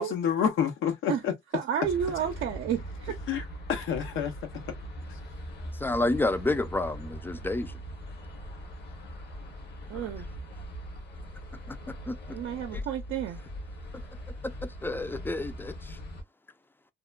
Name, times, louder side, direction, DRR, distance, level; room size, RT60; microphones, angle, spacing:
voice 1, 0.0-1.3 2.2-2.3 3.3-3.4 3.7-4.3, left 8 dB, 85° left, 0.8 m, -28 dB
voice 2, 1.5-2.8 9.9-10.3 12.3-13.4, right 9 dB, 80° right, 0.5 m, -30 dB
sound 1, 1.8-16.2, equal, 55° left, 1.0 m, -41 dB
voice 3, 5.8-7.7 11.7-11.8 12.1-12.4 12.7-12.8 14.4-16.0, left 2 dB, 10° left, 0.4 m, -30 dB
2.9 x 2.1 x 2.3 m
cardioid pair, 90°, 20 cm